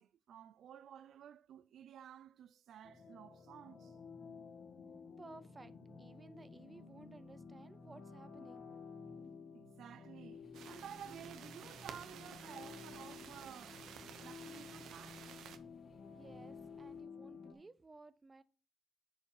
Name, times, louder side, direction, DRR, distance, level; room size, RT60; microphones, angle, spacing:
voice 1, 0.0-4.0 9.5-13.8 14.2-15.3, right 9 dB, 70° right, 0.3 m, -54 dB
sound 1, 2.8-17.5, left 5 dB, 70° left, 2.2 m, -53 dB
voice 2, 5.2-5.7 6.0-8.7 16.1-18.4, right 3 dB, 20° right, 0.6 m, -57 dB
sound 2, 10.3-17.0, left 3 dB, 45° left, 3.1 m, -62 dB
sound 3, 10.5-15.6, right 8 dB, 90° right, 0.9 m, -53 dB
10.5 x 4.9 x 4.6 m
cardioid pair, 135°, 0 cm